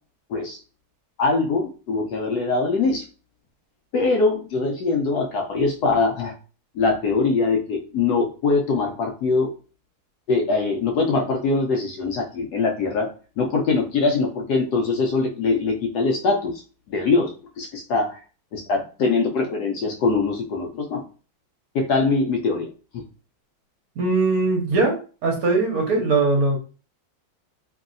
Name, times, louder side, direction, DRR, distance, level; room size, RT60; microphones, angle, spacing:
voice 1, 1.2-3.0 3.9-6.3 6.8-9.5 10.3-13.1 13.4-16.5 16.9-17.3 17.6-18.2 18.5-21.0 21.7-22.7, left 3 dB, 75° left, 1 dB, 0.9 m, -22 dB
voice 2, 24.0-24.9 25.2-26.6, right 3 dB, 60° right, 0 dB, 1.1 m, -20 dB
3.0 x 2.6 x 2.4 m, 0.36 s
omnidirectional pair, 2.2 m